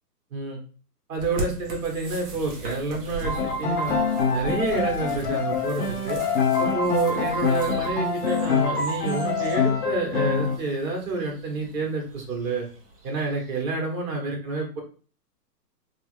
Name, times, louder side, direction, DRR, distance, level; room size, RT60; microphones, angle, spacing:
voice 1, 1.1-4.0 4.3-6.2 6.6-12.7 13.0-14.8, right 3 dB, 55° right, 0 dB, 1.3 m, -28 dB
sound 1, 1.2-13.6, right 2 dB, 35° right, 0.8 m, -40 dB
Piano, 3.2-10.6, left 4 dB, 30° left, 0.7 m, -25 dB
3.3 x 2.1 x 3.1 m, 0.40 s
hypercardioid pair, 140°, 49 cm